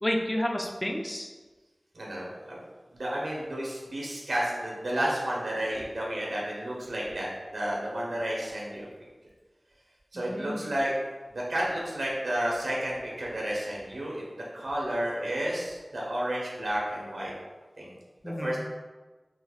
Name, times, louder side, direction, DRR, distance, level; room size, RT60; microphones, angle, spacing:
voice 1, 0.0-1.3 10.1-10.6 18.2-18.6, left 1 dB, 20° left, 1 dB, 0.5 m, -30 dB
voice 2, 1.9-2.6 2.9-8.9 10.1-10.9 11.3-14.2 14.5-17.3 17.8-17.9 18.4-18.6, right 1 dB, 85° right, -4 dB, 1.2 m, -31 dB
5.6 x 3.1 x 2.4 m, 1.3 s
wide cardioid pair, 60°, 0 cm